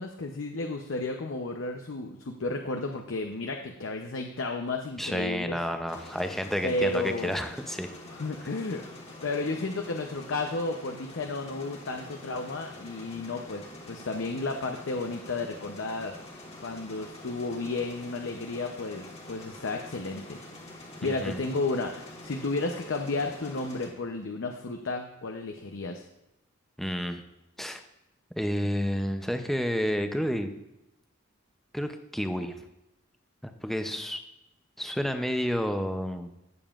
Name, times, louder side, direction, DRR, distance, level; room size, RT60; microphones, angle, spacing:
voice 1, 0.0-5.6 6.6-7.3 8.1-8.8 9.2-16.1 16.6-20.4 21.0-26.0, left 3 dB, 65° left, 3 dB, 0.6 m, -32 dB
voice 2, 5.0-7.9 21.0-21.4 26.8-27.2 27.6-27.8 28.4-30.5 31.7-32.6 33.4-34.2 34.8-36.3, equal, ahead, 7 dB, 0.5 m, -30 dB
sound 1, 5.9-23.9, left 2 dB, 30° left, 1.5 m, -46 dB
16.0 x 7.1 x 2.4 m, 0.90 s
head